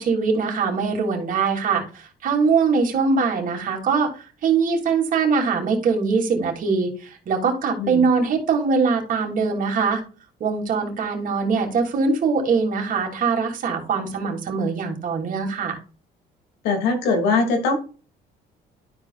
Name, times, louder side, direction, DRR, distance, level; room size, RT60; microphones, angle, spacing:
voice 1, 0.0-4.1 4.4-10.0 10.4-15.8, right 5 dB, 50° right, 2 dB, 2.8 m, -22 dB
voice 2, 16.6-17.8, left 3 dB, 90° left, 5 dB, 2.6 m, -21 dB
12.5 x 5.0 x 2.4 m, 0.36 s
cardioid pair, 110°, 17 cm